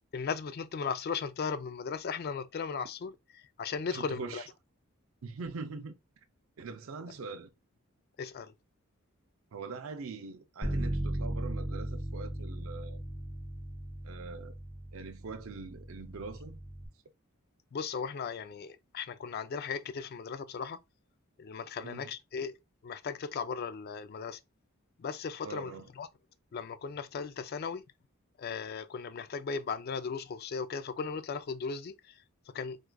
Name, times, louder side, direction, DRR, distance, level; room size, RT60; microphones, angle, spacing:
voice 1, 0.1-4.4 8.2-8.5 17.7-20.8 21.4-22.5 22.8-24.4 25.0-26.1 26.5-27.8 28.4-32.8, left 5 dB, 45° left, 0.3 m, -37 dB
voice 2, 3.9-4.5 5.2-6.0 6.6-7.5 9.5-13.0 14.0-14.6 14.9-16.6 21.8-22.1 25.4-25.9, right 4 dB, 70° right, 0.5 m, -42 dB
Bass guitar, 10.6-16.9, right 1 dB, 15° left, 0.8 m, -37 dB
4.5 x 2.4 x 2.2 m
head